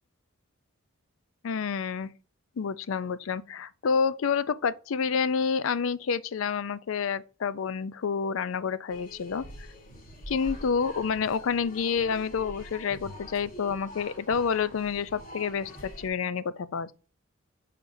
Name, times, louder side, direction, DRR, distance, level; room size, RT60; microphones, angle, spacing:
voice 1, 1.4-2.1 2.6-9.4 10.3-16.9, left 6 dB, 75° left, 0.4 m, -29 dB
sound 1, 8.9-16.1, equal, 45° left, 1.6 m, -44 dB
6.4 x 5.9 x 2.6 m
head